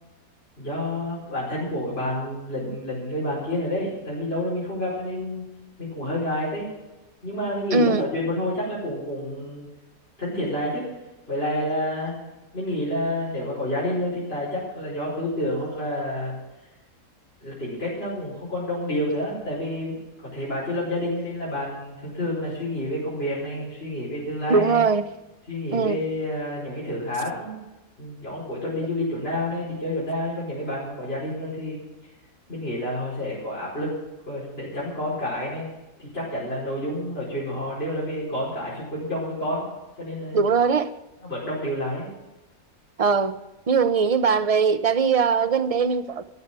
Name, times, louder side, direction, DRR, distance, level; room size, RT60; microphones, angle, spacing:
voice 1, 0.6-5.4 5.8-6.7 7.2-9.7 10.2-10.8 11.3-12.2 12.5-16.4 17.4-20.0 20.3-24.8 25.5-27.6 28.0-31.8 32.5-33.9 34.3-35.7 36.0-39.7 40.0-40.5 41.2-42.1, left 1 dB, 45° left, 5.6 m, -29 dB
voice 2, 7.7-8.0 24.5-25.1 25.7-26.0 40.3-40.9 43.0-43.4 43.7-46.2, right 5 dB, 55° right, 0.4 m, -20 dB
14.0 x 9.5 x 7.5 m
omnidirectional pair, 1.5 m